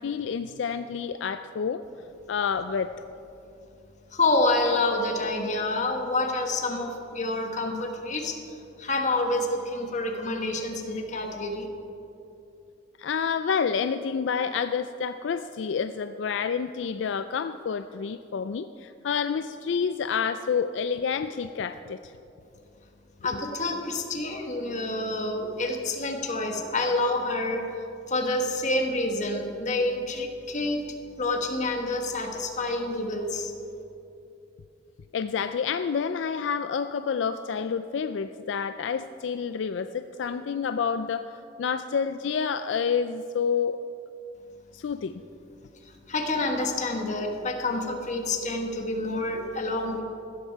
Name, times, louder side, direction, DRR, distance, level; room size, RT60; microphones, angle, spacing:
voice 1, 0.0-1.8 2.3-2.9 7.6-7.7 13.0-22.1 35.1-41.3 41.6-43.8 44.7-45.2, left 6 dB, 70° left, 10 dB, 0.4 m, -29 dB
voice 2, 4.1-8.4 8.8-11.7 23.2-27.7 28.1-30.8 31.2-33.5 46.1-50.0, left 2 dB, 40° left, 3 dB, 1.5 m, -28 dB
15.5 x 13.0 x 4.7 m, 2.8 s
head